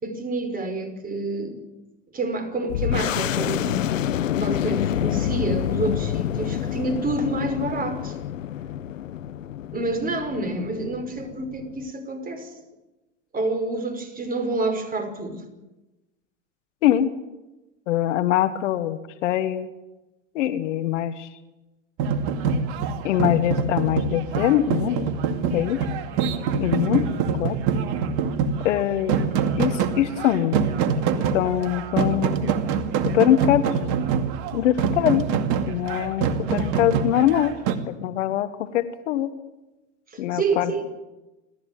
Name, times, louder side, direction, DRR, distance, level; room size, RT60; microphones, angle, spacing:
voice 1, 0.0-1.6 2.1-3.9 4.3-8.2 9.7-12.6 13.3-15.4 40.1-40.8, right 2 dB, 20° right, 5.5 m, -28 dB
sound 1, 2.7-11.9, left 10 dB, 85° left, 1.0 m, -28 dB
voice 2, 17.9-19.7 20.4-21.3 23.0-25.1 25.5-25.9 26.6-27.1 27.4-27.6 28.6-29.2 29.6-30.6 31.2-32.6 33.0-33.6 34.5-35.3 35.7-37.6 37.9-39.3 40.2-40.8, left 12 dB, 70° left, 1.7 m, -23 dB
sound 2, 22.0-37.8, right 6 dB, 55° right, 2.5 m, -25 dB
29.0 x 14.0 x 9.4 m
hypercardioid pair, 95°, 38 cm